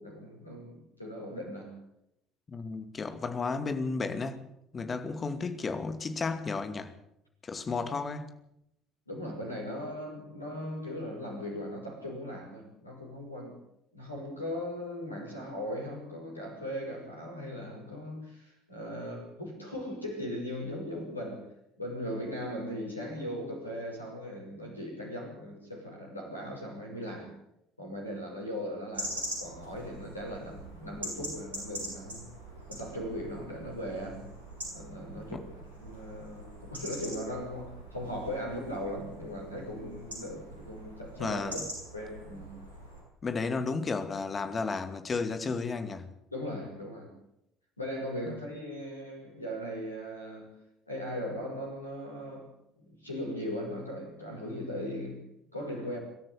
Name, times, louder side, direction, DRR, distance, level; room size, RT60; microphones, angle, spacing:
voice 1, 0.0-1.8 9.1-13.6 13.9-21.4 21.8-27.3 27.8-32.2 32.7-34.3 34.7-35.4 35.8-41.6 41.9-42.6 46.3-47.1 47.8-50.5 50.9-52.5 52.8-55.2 55.5-56.0, equal, 90° left, 5.9 m, -38 dB
voice 2, 2.5-4.5 4.7-6.9 7.4-8.3 35.3-35.4 41.2-41.7 43.2-46.1, left 4 dB, 30° left, 2.4 m, -33 dB
sound 1, 28.9-43.0, right 1 dB, 85° right, 7.4 m, -43 dB
24.0 x 13.0 x 8.3 m
figure-of-eight pair, 55°, 0 cm